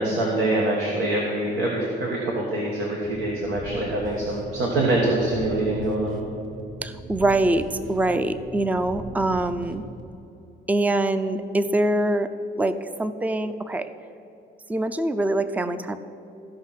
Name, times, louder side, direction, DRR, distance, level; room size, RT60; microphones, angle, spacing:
voice 1, 0.0-6.2, right 1 dB, 90° right, -2 dB, 1.4 m, -24 dB
sound 1, 3.0-10.1, right 2 dB, 45° right, 1.3 m, -40 dB
voice 2, 6.8-9.8 10.7-12.3 12.6-13.9 14.7-16.0, right 2 dB, 10° right, 11 dB, 0.4 m, -24 dB
14.5 x 5.5 x 5.7 m, 2.9 s
cardioid pair, 90°, 20 cm